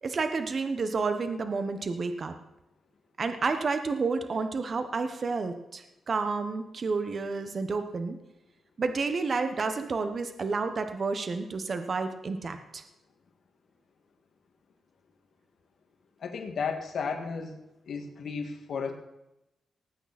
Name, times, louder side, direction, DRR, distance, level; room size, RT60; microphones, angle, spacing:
voice 1, 0.0-2.3 3.2-8.2 8.8-12.8, right 4 dB, 50° right, 8 dB, 1.2 m, -30 dB
voice 2, 16.2-17.6 17.9-18.9, left 5 dB, 70° left, 4 dB, 2.1 m, -33 dB
19.0 x 9.1 x 4.3 m, 0.90 s
cardioid pair, 80°, 0 cm